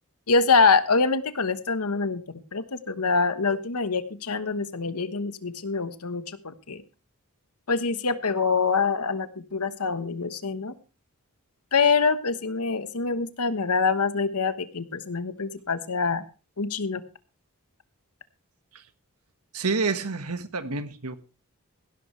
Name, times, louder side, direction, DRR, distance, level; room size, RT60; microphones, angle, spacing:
voice 1, 0.3-6.8 7.7-10.7 11.7-16.2 16.6-17.0, left 4 dB, 85° left, 11 dB, 1.2 m, -25 dB
voice 2, 19.5-21.2, right 4 dB, 85° right, 10 dB, 1.5 m, -28 dB
16.0 x 12.5 x 3.3 m, 0.32 s
head